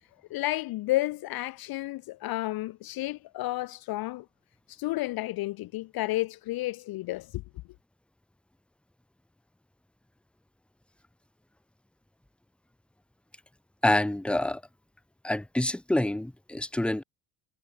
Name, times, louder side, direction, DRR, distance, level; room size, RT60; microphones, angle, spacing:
voice 1, 0.3-4.3 4.7-7.4, left 17 dB, 55° left, 0.6 m, -31 dB
voice 2, 13.8-14.6 15.2-17.0, left 1 dB, ahead, 1.0 m, -27 dB
supercardioid pair, 100°, 45 cm